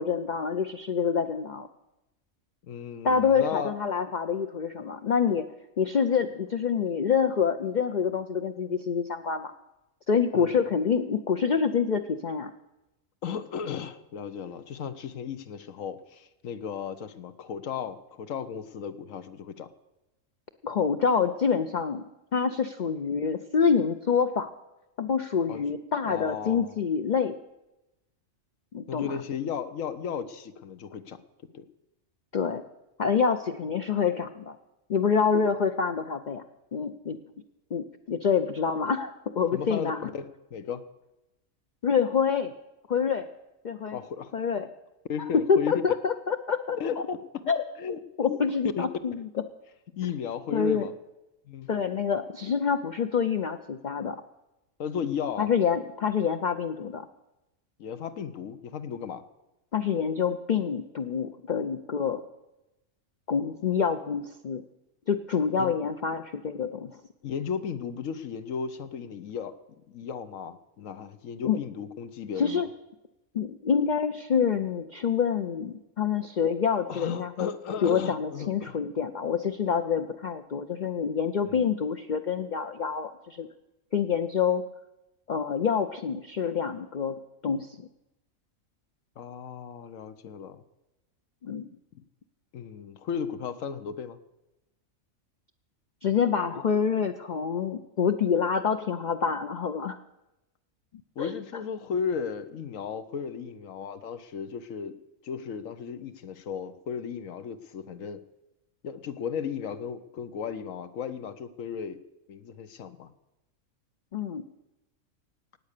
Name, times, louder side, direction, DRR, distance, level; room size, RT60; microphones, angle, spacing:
voice 1, 0.0-1.7 3.0-5.5 5.8-9.5 10.1-12.5 20.6-22.0 22.3-24.5 25.0-27.4 28.7-29.2 32.3-32.6 33.0-34.6 34.9-36.4 36.7-37.2 37.7-40.0 41.8-42.5 42.9-43.3 43.6-44.0 44.3-44.7 45.3-46.8 47.5-47.6 48.2-49.3 50.5-50.9 51.7-54.2 55.4-57.1 59.7-62.2 63.3-64.6 65.1-67.0 71.4-71.6 72.4-72.7 73.3-77.5 77.8-83.5 83.9-84.6 85.3-87.8 91.4-91.7 96.0-100.0 101.2-101.3 114.1-114.4, left 6 dB, 50° left, 7 dB, 0.6 m, -27 dB
voice 2, 2.7-3.8 10.3-10.5 13.2-19.7 25.5-25.6 26.1-26.7 28.9-31.2 31.5-31.6 39.5-40.9 43.9-44.3 45.1-45.7 46.8-47.2 47.5-48.4 48.8-48.9 50.0-50.9 51.5-51.7 54.8-55.5 57.8-59.2 65.6-65.7 67.2-69.6 69.9-72.6 76.9-78.8 81.5-81.7 89.2-90.6 91.9-92.0 92.5-94.2 101.2-104.9 105.2-108.2 108.8-112.0 112.3-113.1, left 7 dB, 70° left, 11 dB, 1.2 m, -35 dB
18.0 x 8.5 x 6.6 m, 0.96 s
omnidirectional pair, 1.4 m